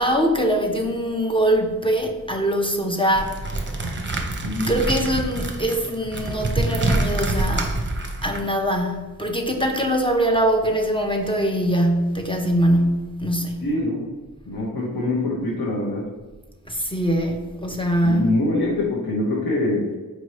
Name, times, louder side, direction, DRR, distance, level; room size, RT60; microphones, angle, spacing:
voice 1, 0.0-3.5 4.7-7.8 8.2-13.6 16.7-18.4, right 1 dB, 15° left, 0.5 m, -22 dB
sound 1, 3.1-8.4, right 2 dB, 30° right, 0.6 m, -26 dB
voice 2, 4.4-4.7 13.6-14.1 14.5-16.0 18.0-19.9, left 2 dB, 75° left, 0.9 m, -24 dB
4.5 x 2.7 x 3.1 m
wide cardioid pair, 55°, 36 cm